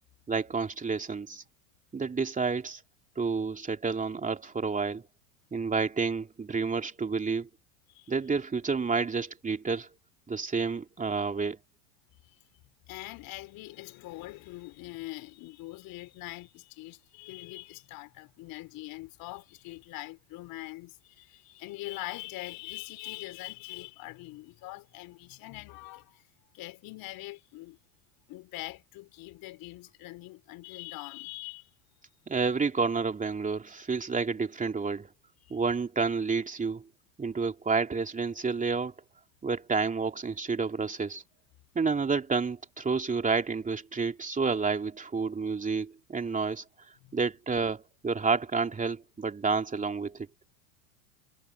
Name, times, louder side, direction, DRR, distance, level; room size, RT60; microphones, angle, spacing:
voice 1, 0.3-1.4 1.9-2.8 3.2-5.1 5.5-7.5 8.1-9.9 10.3-11.6 32.3-35.1 35.5-36.8 37.2-38.9 39.4-41.2 41.7-50.3, right 4 dB, 15° right, 2.9 m, -30 dB
voice 2, 12.9-26.2 26.5-27.8 28.3-31.7 35.4-35.6 47.0-47.2, left 19 dB, 50° left, 3.5 m, -43 dB
hypercardioid pair, 100°, 45 cm